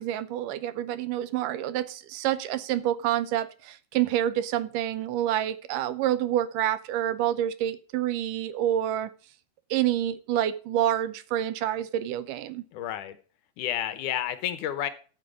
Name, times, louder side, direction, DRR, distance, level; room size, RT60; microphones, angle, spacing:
voice 1, 0.0-9.1 9.7-12.6, right 12 dB, 80° right, 2.2 m, -28 dB
voice 2, 12.7-13.2 13.6-14.9, left 11 dB, 75° left, 2.2 m, -30 dB
13.5 x 6.9 x 4.9 m
omnidirectional pair, 4.0 m